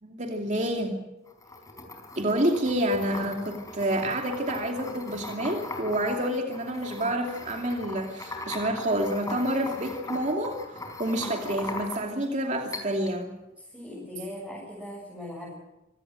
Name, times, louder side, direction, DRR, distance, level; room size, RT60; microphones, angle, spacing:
voice 1, 0.0-1.0 2.2-13.3, right 1 dB, 40° right, 3 dB, 2.6 m, -28 dB
sound 1, 1.3-12.3 12.7-13.2, left 2 dB, 20° left, 4.7 m, -39 dB
voice 2, 13.6-15.5, left 1 dB, 5° right, -6 dB, 7.9 m, -39 dB
26.5 x 17.5 x 7.8 m, 0.97 s
head